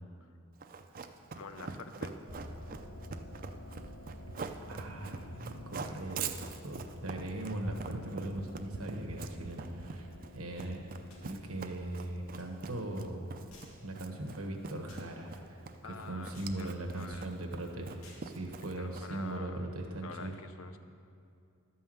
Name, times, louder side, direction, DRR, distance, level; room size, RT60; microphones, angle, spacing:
Run, 0.6-19.3, right 5 dB, 40° right, 0.5 m, -44 dB
voice 1, 1.3-2.2 15.8-17.3 18.8-19.7 20.0-20.8, left 4 dB, 70° left, 8 dB, 0.7 m, -47 dB
sound 1, 2.3-18.7, left 1 dB, ahead, 0.9 m, -53 dB
voice 2, 4.6-6.3 6.6-10.8 11.2-13.3 13.8-15.7 16.1-17.9 18.2-20.3, right 1 dB, 85° right, 1 dB, 1.2 m, -39 dB
sound 2, 11.1-11.3 12.4-12.5 13.5-13.8 14.9-15.1 16.3-16.6 18.0-18.3, left 2 dB, 85° left, 2.3 m, -56 dB
12.0 x 5.5 x 7.6 m, 2.5 s
head